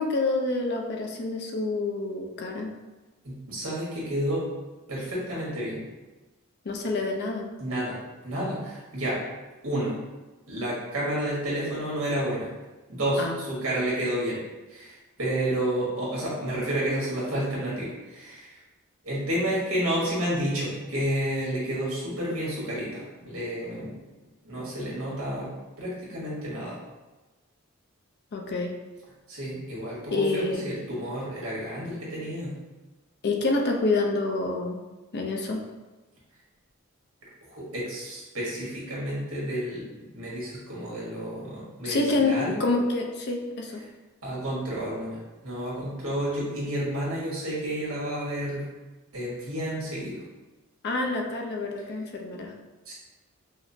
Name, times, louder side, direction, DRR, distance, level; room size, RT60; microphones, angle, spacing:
voice 1, 0.0-2.7 6.7-7.5 13.2-13.3 28.3-28.7 30.1-30.7 33.2-34.8 35.1-35.6 41.8-43.8 50.8-52.5, left 3 dB, 50° left, 2 dB, 0.5 m, -27 dB
voice 2, 3.2-4.5 4.9-5.8 7.6-8.0 8.2-9.2 9.6-9.9 10.5-12.5 12.9-14.4 14.7-18.6 19.0-24.0 24.4-25.5 25.8-26.8 29.3-32.6 37.5-39.8 40.1-42.5 44.2-48.7 49.1-50.2 52.8-52.9, right 1 dB, 80° right, -6 dB, 1.3 m, -30 dB
5.0 x 2.0 x 2.6 m, 1.2 s
head